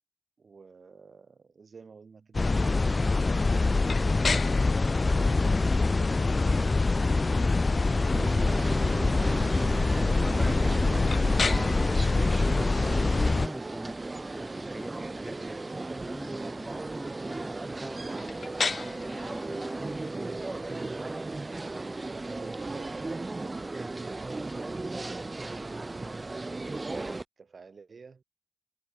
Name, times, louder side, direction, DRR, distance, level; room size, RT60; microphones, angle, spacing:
voice 1, 0.4-4.1 5.0-6.9 22.0-25.3 26.2-28.2, right 5 dB, 80° right, 5.3 m, -51 dB
sound 1, 2.3-13.5, left 3 dB, 50° left, 0.8 m, -24 dB
sound 2, 3.8-23.6, left 4 dB, 75° left, 0.4 m, -39 dB
sound 3, 8.1-27.2, right 2 dB, 45° right, 0.5 m, -36 dB
voice 2, 12.8-14.0 14.3-15.7 16.0-20.1, right 1 dB, 10° right, 1.9 m, -44 dB
cardioid pair, 45°, 0 cm